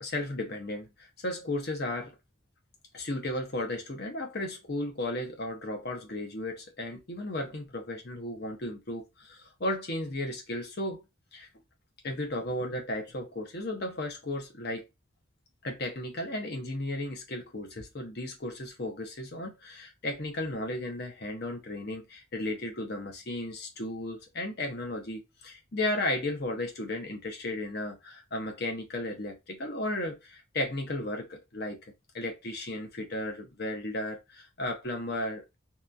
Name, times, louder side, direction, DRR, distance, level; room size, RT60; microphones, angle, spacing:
voice 1, 0.0-2.2 2.9-11.0 11.3-11.5 12.0-14.9 15.6-31.8 32.1-35.4, left 1 dB, 50° left, 0.8 m, -34 dB
2.9 x 2.5 x 2.3 m
head